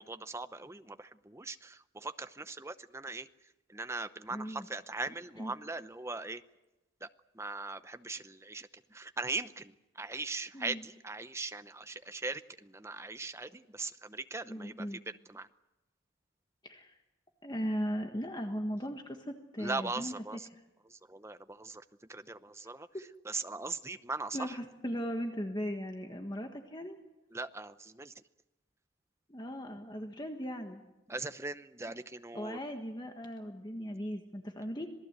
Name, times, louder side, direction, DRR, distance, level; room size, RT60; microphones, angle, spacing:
voice 1, 0.0-3.3 3.7-6.4 7.0-7.1 7.4-15.0 15.3-15.5 19.6-20.5 20.9-21.8 22.1-22.9 23.2-24.6 27.3-28.1 31.1-32.6, right 3 dB, 15° right, 11 dB, 0.7 m, -40 dB
voice 2, 4.3-4.7 5.4-5.5 10.5-10.8 14.5-15.0 16.6-17.0 17.4-20.6 24.3-27.0 29.3-30.8 32.3-34.9, equal, 20° left, 4 dB, 1.5 m, -38 dB
27.0 x 19.0 x 8.1 m, 0.98 s
head